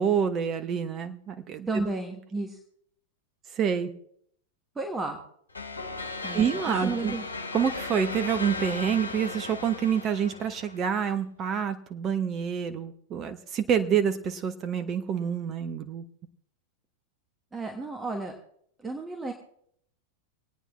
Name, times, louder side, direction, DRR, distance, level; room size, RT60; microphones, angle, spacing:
voice 1, 0.0-1.8 3.5-3.9 6.3-7.2 7.5-16.0, right 8 dB, 30° right, 10 dB, 1.0 m, -27 dB
voice 2, 1.7-2.6 4.7-5.2 6.2-7.2 17.5-18.3 18.8-19.3, right 3 dB, 15° right, 3 dB, 1.4 m, -32 dB
sound 1, 5.5-11.0, left 3 dB, 80° left, 0.9 m, -36 dB
27.0 x 9.1 x 3.2 m, 0.67 s
figure-of-eight pair, 90°, 0 cm